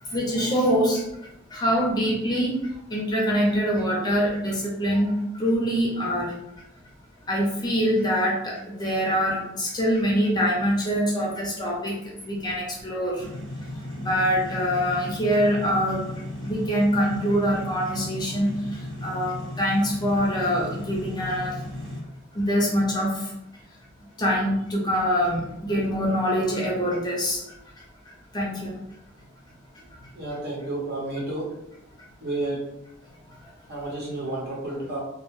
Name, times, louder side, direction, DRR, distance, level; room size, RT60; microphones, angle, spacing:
voice 1, 0.0-6.3 7.3-13.3 13.9-21.6 22.3-23.3 24.2-27.6 28.3-28.8 29.7-29.8 33.3-33.5, equal, 20° left, -3 dB, 0.5 m, -25 dB
sound 1, 13.2-22.0, left 1 dB, 25° right, 0.9 m, -36 dB
voice 2, 30.1-31.4 32.2-32.6 33.7-35.0, right 2 dB, 55° right, -4 dB, 0.9 m, -31 dB
2.2 x 2.1 x 3.0 m, 0.82 s
head